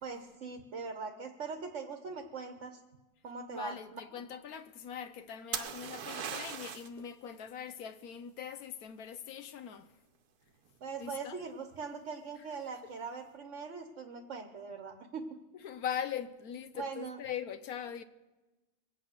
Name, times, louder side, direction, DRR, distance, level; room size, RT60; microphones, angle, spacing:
voice 1, 0.0-2.8 3.2-4.0 10.8-15.3 16.7-17.2, right 5 dB, 50° right, 1.3 m, -41 dB
voice 2, 3.5-9.9 11.0-11.4 15.6-18.0, left 8 dB, 70° left, 1.2 m, -41 dB
sound 1, 5.5-7.0 10.7-11.1, right 7 dB, 75° right, 1.4 m, -39 dB
23.0 x 8.6 x 6.6 m
omnidirectional pair, 1.7 m